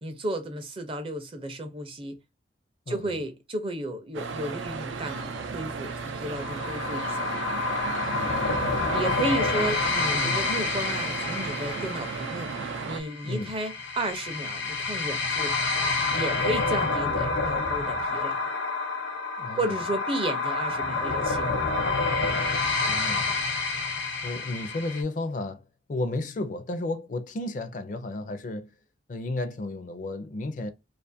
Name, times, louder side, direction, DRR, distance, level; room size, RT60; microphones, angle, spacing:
voice 1, 0.0-2.2 2.9-7.4 8.9-15.6 16.1-18.5 19.6-21.6, right 1 dB, 30° right, 0.5 m, -33 dB
voice 2, 2.9-3.2 8.1-8.9 9.2-9.7 10.1-10.4 13.2-13.5 19.4-19.8 22.9-23.4 23.8-23.9 24.2-25.6 25.9-28.7 29.1-30.7, left 2 dB, 45° left, 0.4 m, -33 dB
sound 1, 4.1-13.0, right 5 dB, 90° right, 0.4 m, -34 dB
sound 2, 6.4-25.0, left 3 dB, 75° left, 0.7 m, -28 dB
2.5 x 2.4 x 2.5 m
head